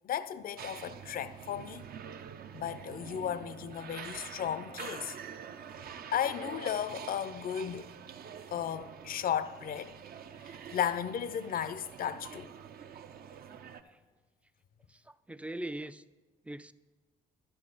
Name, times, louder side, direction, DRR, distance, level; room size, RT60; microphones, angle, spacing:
voice 1, 0.0-1.9 2.5-5.2 6.1-7.9 8.5-9.9 10.4-12.5, left 9 dB, 55° left, 0.5 m, -35 dB
sound 1, 0.6-13.8, right 7 dB, 55° right, 0.6 m, -46 dB
voice 2, 14.9-16.0 16.4-16.7, right 1 dB, 5° right, 0.4 m, -41 dB
11.5 x 7.8 x 3.9 m
hypercardioid pair, 50°, 18 cm